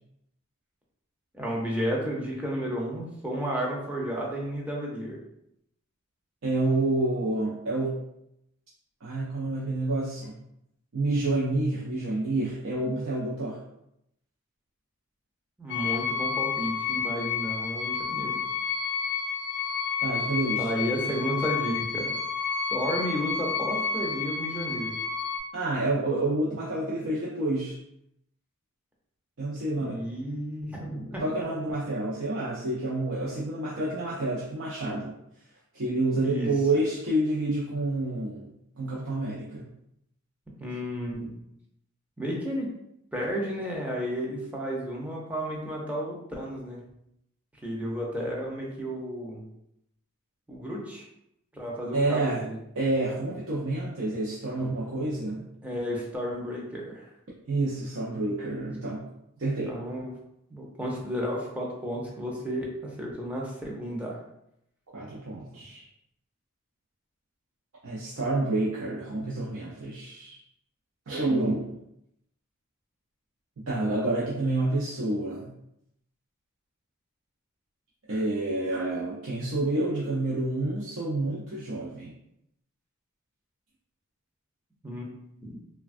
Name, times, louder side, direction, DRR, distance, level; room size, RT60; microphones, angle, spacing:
voice 1, 1.3-5.2 15.6-18.4 20.6-22.1 22.7-24.9 29.7-31.2 36.2-36.5 40.6-41.3 42.2-42.7 43.1-46.8 47.6-49.4 50.5-51.1 51.5-52.6 55.1-55.3 55.6-57.1 58.9-59.1 59.7-60.1 60.5-64.2 84.8-85.1 85.4-85.6, equal, 5° right, -3 dB, 0.5 m, -32 dB
voice 2, 6.4-8.0 9.0-10.4 10.9-13.6 20.0-20.7 25.5-27.8 29.4-30.0 31.2-35.1 35.7-38.4 38.8-39.7 51.9-52.4 52.8-55.5 57.5-59.0 59.4-59.7 64.9-65.9 67.8-70.4 71.1-71.7 73.6-75.5 78.1-82.1, right 2 dB, 65° right, -6 dB, 0.5 m, -28 dB
sound 1, 15.7-25.4, left 6 dB, 55° left, 0.4 m, -30 dB
3.3 x 2.2 x 2.5 m, 0.79 s
head